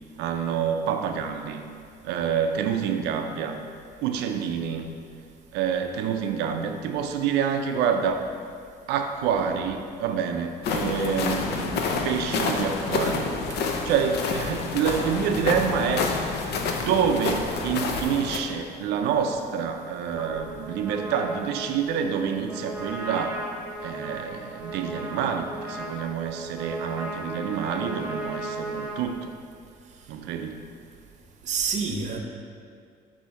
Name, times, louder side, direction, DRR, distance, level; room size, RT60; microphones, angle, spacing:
voice 1, 0.2-1.6 2.0-3.6 4.0-4.9 5.5-8.2 8.9-11.8 12.0-13.3 13.8-16.1 16.8-23.4 23.8-29.3 30.1-30.6, right 7 dB, 90° right, 5 dB, 0.5 m, -27 dB
sound 1, 10.6-18.4, left 4 dB, 75° left, 0.7 m, -28 dB
Trumpet, 20.1-29.0, right 1 dB, 5° right, 1.0 m, -36 dB
voice 2, 31.4-32.2, right 5 dB, 45° right, 2 dB, 0.7 m, -28 dB
6.9 x 2.8 x 5.7 m, 2.2 s
cardioid pair, 110°, 17 cm